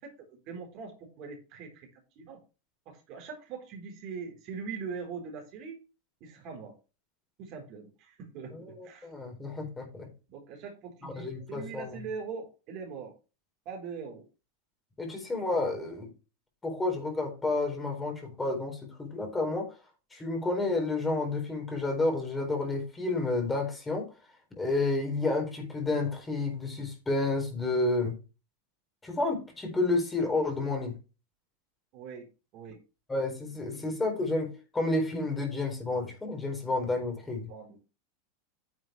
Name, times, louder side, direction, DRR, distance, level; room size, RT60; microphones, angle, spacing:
voice 1, 0.0-2.4 2.9-5.8 6.2-6.7 7.4-9.1 10.3-13.1 13.7-14.2 31.9-32.3 32.5-32.8 37.5-37.8, right 5 dB, 45° right, 3 dB, 4.1 m, -42 dB
voice 2, 8.5-10.1 11.0-12.0 15.0-16.1 16.6-19.7 20.1-24.1 24.6-28.2 29.0-31.0 33.1-37.5, left 2 dB, 15° left, 2 dB, 4.2 m, -30 dB
9.5 x 7.6 x 3.3 m, 0.30 s
figure-of-eight pair, 85°, 0 cm